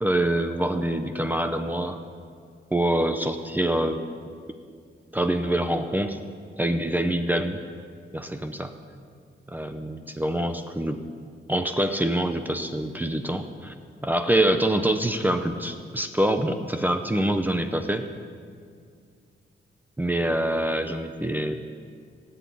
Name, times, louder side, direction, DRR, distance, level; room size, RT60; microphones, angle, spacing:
voice 1, 0.0-2.0 2.7-4.0 5.1-6.2 6.6-7.6 8.1-8.7 9.5-11.0 11.5-13.7 14.0-18.0 20.0-21.5, right 1 dB, 10° right, 7 dB, 0.7 m, -25 dB
18.0 x 8.2 x 8.5 m, 2.2 s
wide cardioid pair, 160°, 20 cm